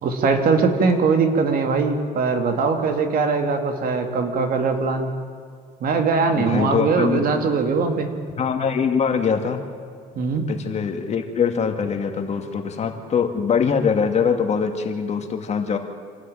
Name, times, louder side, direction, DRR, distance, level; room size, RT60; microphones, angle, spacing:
voice 1, 0.0-5.1 5.8-8.1 10.1-10.4, right 4 dB, 60° right, 5 dB, 2.5 m, -21 dB
voice 2, 6.4-7.2 8.4-9.6 10.5-15.8, left 6 dB, 40° left, 5 dB, 2.3 m, -23 dB
26.5 x 13.0 x 9.2 m, 2.1 s
cardioid pair, 110°, 17 cm